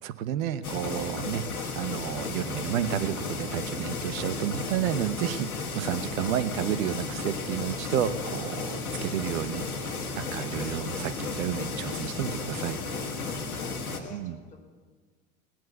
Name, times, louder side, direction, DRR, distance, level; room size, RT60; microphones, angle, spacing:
voice 1, 0.0-1.4 1.7-12.8 14.1-14.4, right 10 dB, 70° right, 12 dB, 1.0 m, -31 dB
sound 1, 0.6-14.0, left 4 dB, 90° left, 1.5 m, -34 dB
sound 2, 6.4-13.5, left 7 dB, 50° left, 1.6 m, -51 dB
voice 2, 13.3-14.6, left 3 dB, 20° left, -1 dB, 5.3 m, -50 dB
18.5 x 7.7 x 8.1 m, 1.5 s
hypercardioid pair, 75°, 42 cm